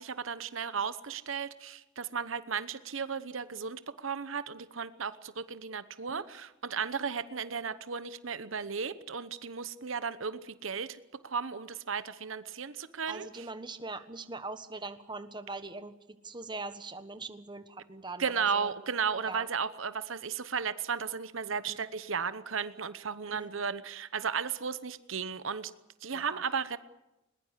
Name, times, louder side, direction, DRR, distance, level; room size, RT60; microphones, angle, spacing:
voice 1, 0.0-13.5 18.2-25.7 26.0-26.8, right 6 dB, 80° right, 13 dB, 1.0 m, -35 dB
voice 2, 13.1-15.9 16.2-18.7 19.2-19.5 21.7-21.8 23.3-23.5 26.1-26.4, right 3 dB, 25° right, 10 dB, 1.3 m, -42 dB
21.5 x 20.5 x 8.3 m, 0.97 s
head